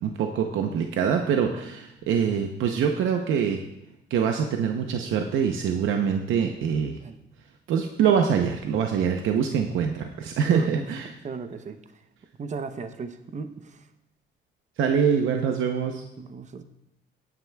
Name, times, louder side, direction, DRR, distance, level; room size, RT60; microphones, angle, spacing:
voice 1, 0.0-3.6 4.1-7.0 7.7-11.1 14.8-16.1, right 7 dB, 80° right, 4 dB, 0.8 m, -24 dB
voice 2, 10.4-11.0 11.2-12.1 12.4-13.9 16.2-16.6, right 4 dB, 35° right, 9 dB, 0.7 m, -36 dB
16.5 x 9.6 x 2.3 m, 0.87 s
cardioid pair, 90°, 20 cm